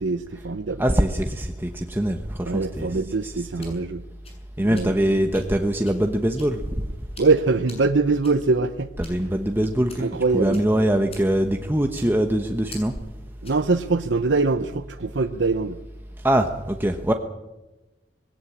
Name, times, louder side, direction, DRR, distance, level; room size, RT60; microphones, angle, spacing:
voice 1, 0.0-0.8 2.5-4.0 4.6-4.9 7.2-8.9 10.0-10.6 13.4-15.8, right 3 dB, 80° right, 0.8 m, -23 dB
voice 2, 0.8-3.7 4.6-6.6 9.0-12.9 16.2-17.1, right 1 dB, 10° right, 1.0 m, -23 dB
sound 1, 3.4-13.7, left 2 dB, 35° left, 7.3 m, -48 dB
21.0 x 17.5 x 8.5 m
head